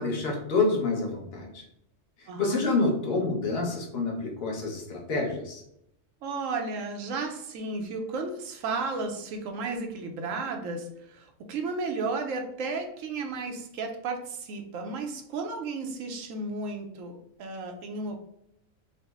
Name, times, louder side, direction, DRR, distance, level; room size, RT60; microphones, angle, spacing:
voice 1, 0.0-1.6 2.4-5.6, left 3 dB, 55° left, 1 dB, 1.1 m, -27 dB
voice 2, 2.3-2.6 6.2-18.2, right 3 dB, 85° right, 3 dB, 1.0 m, -33 dB
4.0 x 2.1 x 3.4 m, 0.77 s
omnidirectional pair, 1.3 m